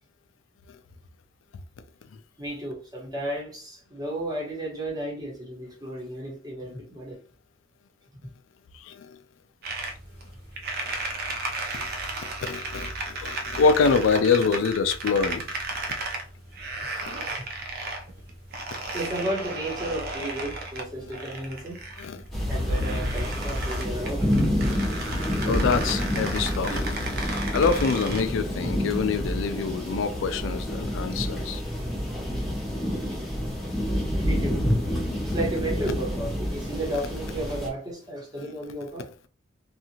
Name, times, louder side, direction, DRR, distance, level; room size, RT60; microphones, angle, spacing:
voice 1, 2.4-7.2 8.2-8.3 17.4-17.5 18.9-21.8 22.5-24.3 32.1-32.2 34.1-34.8 35.3-39.1, right 1 dB, 20° right, 1.1 m, -32 dB
voice 2, 8.7-9.1 11.7-11.9 12.2-15.5 15.9-16.0 17.0-17.1 22.0-22.2 25.0-25.1 25.4-27.1 27.5-31.6 38.4-38.5, left 5 dB, 70° left, 0.4 m, -25 dB
sound 1, 9.6-28.2, right 2 dB, 55° right, 0.6 m, -35 dB
sound 2, 22.3-37.7, equal, ahead, 0.8 m, -28 dB
2.7 x 2.4 x 2.8 m
head